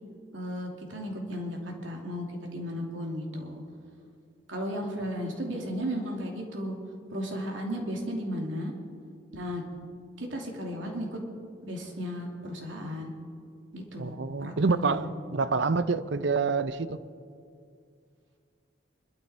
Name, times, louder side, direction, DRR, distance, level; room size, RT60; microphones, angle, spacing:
voice 1, 0.3-3.6 4.5-6.8 7.1-8.7 9.3-9.6 10.2-11.2 11.6-13.1 13.7-15.1, equal, 90° right, 0 dB, 3.0 m, -35 dB
voice 2, 14.0-17.0, right 4 dB, 70° right, 13 dB, 0.7 m, -27 dB
24.5 x 13.0 x 4.4 m, 2.3 s
head